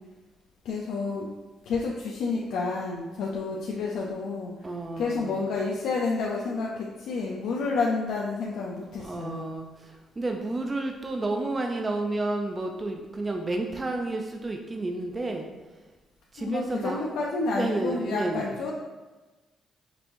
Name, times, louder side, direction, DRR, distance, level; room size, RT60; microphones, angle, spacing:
voice 1, 0.6-1.3 1.6-4.7 5.0-9.5 16.4-18.7, left 4 dB, 80° left, -3 dB, 0.4 m, -30 dB
voice 2, 4.6-5.4 8.9-15.5 16.3-17.0 17.5-18.5, right 2 dB, 25° right, 3 dB, 0.4 m, -31 dB
5.2 x 2.8 x 2.6 m, 1.2 s
cardioid pair, 90°, 0 cm